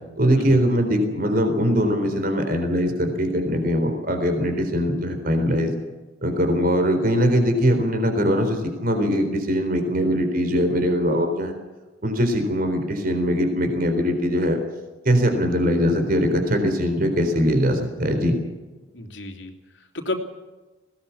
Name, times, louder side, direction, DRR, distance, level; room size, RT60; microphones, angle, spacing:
voice 1, 0.2-5.7 6.2-11.5 12.0-14.6 15.0-18.4, equal, 45° right, 6 dB, 3.9 m, -21 dB
voice 2, 18.9-20.2, left 2 dB, 70° left, 4 dB, 3.0 m, -32 dB
20.5 x 18.0 x 7.1 m, 1.2 s
head